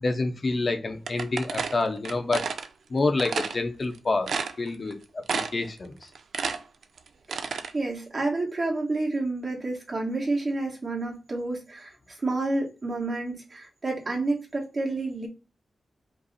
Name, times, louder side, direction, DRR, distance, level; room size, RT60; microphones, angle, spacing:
voice 1, 0.0-2.4 2.9-5.0 5.3-5.9, left 3 dB, 45° left, 0.7 m, -27 dB
sound 1, 1.1-2.7 3.2-3.6 3.9-4.0 4.3-4.9 5.3-5.7 6.0-7.7, right 5 dB, 85° right, 0.4 m, -30 dB
voice 2, 7.3-15.3, right 2 dB, 40° right, 1.3 m, -29 dB
5.2 x 2.0 x 4.1 m
wide cardioid pair, 105°, 0 cm